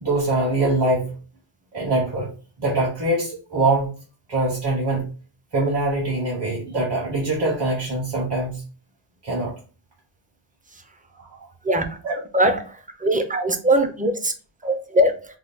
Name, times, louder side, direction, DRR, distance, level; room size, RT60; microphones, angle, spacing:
voice 1, 0.0-1.1 1.7-2.3 2.6-3.9 4.3-5.1 5.5-8.6 9.2-9.5 11.2-11.3 12.0-12.2, right 2 dB, 55° right, 1.2 m, -23 dB
voice 2, 12.3-12.8 13.0-14.3 14.6-15.1, right 1 dB, 20° right, 0.4 m, -20 dB
3.0 x 2.2 x 3.5 m
wide cardioid pair, 75°, 49 cm